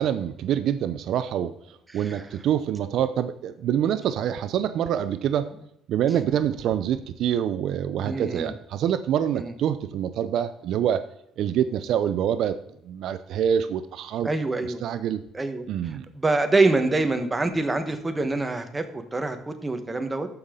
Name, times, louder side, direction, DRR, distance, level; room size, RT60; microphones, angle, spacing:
voice 1, 0.0-1.5 1.9-5.5 5.9-11.0 11.4-12.6 12.9-14.3 14.8-15.2 15.7-16.1, right 9 dB, 70° right, 12 dB, 0.5 m, -26 dB
voice 2, 8.0-8.5 9.4-9.5 14.2-14.8 15.3-15.6 16.1-20.3, right 2 dB, 15° right, 7 dB, 1.2 m, -25 dB
13.5 x 5.6 x 3.7 m, 0.77 s
cardioid pair, 105°, 0 cm